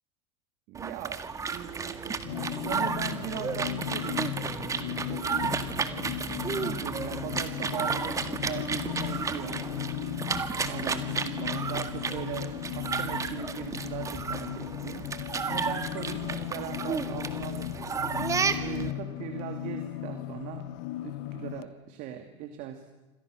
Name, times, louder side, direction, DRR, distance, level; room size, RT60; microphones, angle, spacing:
sound 1, 0.7-18.9, right 5 dB, 20° right, 1.9 m, -33 dB
voice 1, 0.7-1.2 1.5-4.3 5.1-5.9 6.5-9.6 10.6-17.8 18.6-20.7 21.0-22.9, right 10 dB, 55° right, 6 dB, 2.7 m, -39 dB
sound 2, 2.2-21.6, left 13 dB, 65° left, 1.4 m, -36 dB
28.5 x 26.0 x 6.5 m, 1.1 s
supercardioid pair, 110°, 15 cm